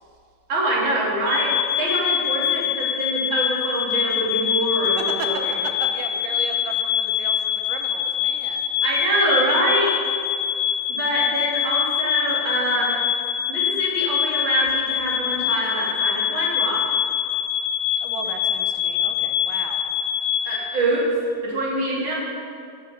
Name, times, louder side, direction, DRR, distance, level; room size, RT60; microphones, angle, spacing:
voice 1, 0.5-1.5 1.8-5.5 8.8-9.9 10.9-13.0 13.5-16.8 20.4-21.0 21.4-22.2, right 1 dB, 35° right, -6 dB, 3.3 m, -24 dB
sound 1, 1.3-20.6, left 9 dB, 85° left, 2.8 m, -24 dB
voice 2, 5.0-5.3 5.6-8.6 18.0-20.3, right 5 dB, 90° right, 4 dB, 2.8 m, -36 dB
18.5 x 6.4 x 5.7 m, 2.3 s
omnidirectional pair, 4.5 m